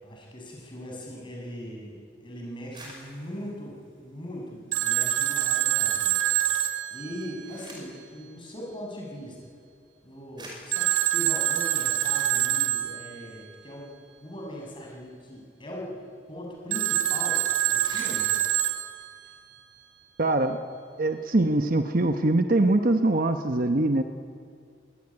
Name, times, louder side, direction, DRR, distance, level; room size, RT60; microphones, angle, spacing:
voice 1, 0.0-9.5 10.0-16.0 16.3-18.3, equal, 25° left, -1 dB, 6.3 m, -40 dB
sound 1, 2.6-5.1 5.5-6.2 7.0-8.1 9.1-9.2 9.9-10.0 10.3-12.7 13.0-13.1 13.4-16.0 16.3-16.4 16.7-16.9 17.3-17.4 17.6-19.8, right 1 dB, 25° right, 5.8 m, -50 dB
Telephone, 4.7-7.8 10.7-13.3 16.7-19.4, right 12 dB, 85° right, 1.7 m, -26 dB
voice 2, 20.2-20.6 21.0-24.0, right 2 dB, 45° right, 7 dB, 1.0 m, -23 dB
23.0 x 18.5 x 9.7 m, 2.2 s
head